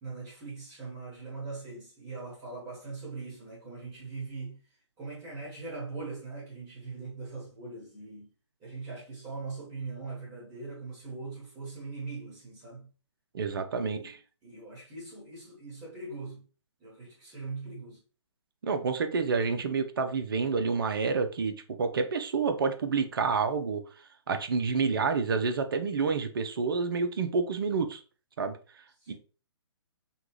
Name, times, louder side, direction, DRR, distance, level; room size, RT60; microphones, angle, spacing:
voice 1, 0.0-4.6 5.0-8.3 8.6-12.9 13.7-14.1 14.4-16.5 16.8-18.0 29.0-29.1, right 3 dB, 20° right, 1.4 m, -41 dB
voice 2, 13.3-14.2 18.6-23.8 24.3-28.0 28.4-29.1, right 5 dB, 50° right, 0.5 m, -29 dB
3.5 x 2.3 x 3.0 m
figure-of-eight pair, 130°, 15 cm